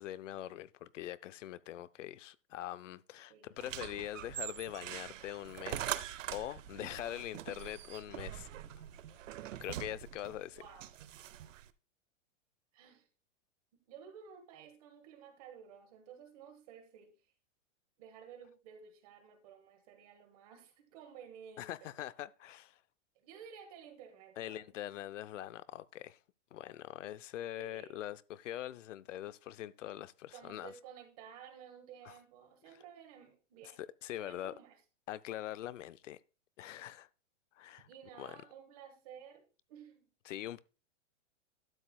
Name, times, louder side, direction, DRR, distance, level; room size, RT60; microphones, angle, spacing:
voice 1, 0.0-6.0 6.3-8.5 9.6-10.6 21.6-22.8 24.4-26.2 26.5-30.7 32.0-32.1 33.8-34.5 35.1-36.2 36.6-37.1 37.6-37.9 38.2-38.4 40.3-40.6, left 13 dB, 75° left, 0.6 m, -43 dB
sound 1, 3.6-11.7, right 12 dB, 80° right, 0.7 m, -43 dB
voice 2, 10.5-10.9 12.7-13.1 13.9-17.1 18.0-21.9 23.1-24.7 27.6-28.0 30.3-33.8 34.2-34.8 37.8-39.4 39.7-40.1, right 8 dB, 30° right, 1.2 m, -54 dB
12.5 x 7.5 x 2.2 m
supercardioid pair, 175°, 38 cm